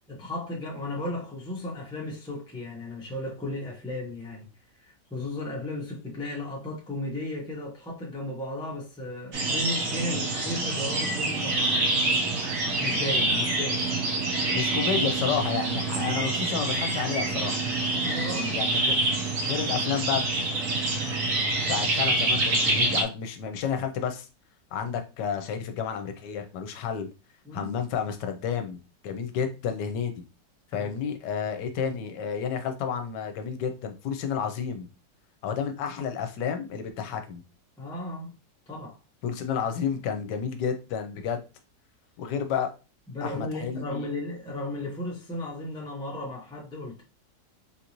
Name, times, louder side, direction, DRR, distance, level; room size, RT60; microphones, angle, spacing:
voice 1, 0.1-4.5 4.8-12.4 12.8-13.8 15.9-16.3 17.8-18.6 27.4-27.7 30.7-30.9 37.8-38.3 38.7-39.0 43.1-47.0, left 1 dB, 5° left, 0.4 m, -35 dB
sound 1, 9.3-23.0, right 2 dB, 60° right, 1.1 m, -26 dB
voice 2, 14.5-17.6 18.5-18.9 19.4-20.2 21.7-24.3 24.7-27.1 27.5-30.1 30.7-34.9 35.4-37.4 39.2-41.4 42.2-42.7 43.2-44.1, left 7 dB, 75° left, 1.2 m, -31 dB
3.7 x 2.6 x 2.9 m
omnidirectional pair, 1.9 m